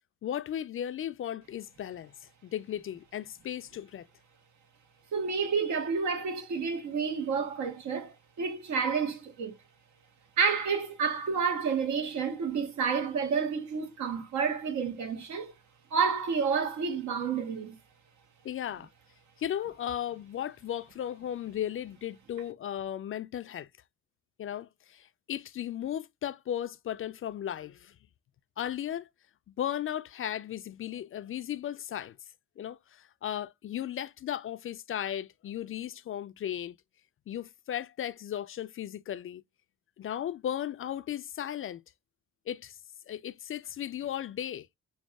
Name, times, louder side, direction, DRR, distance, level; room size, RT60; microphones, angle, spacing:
voice 1, 0.2-4.1 18.4-18.9 19.4-23.7 24.4-28.0 28.6-29.1 29.6-32.2 32.6-36.8 37.3-39.4 40.0-41.8 42.5-42.8 43.1-44.7, left 10 dB, 45° left, 0.4 m, -36 dB
voice 2, 5.1-9.5 10.4-15.5 15.9-17.8, right 5 dB, 70° right, 1.2 m, -30 dB
6.2 x 2.3 x 2.2 m
cardioid pair, 90°, 30 cm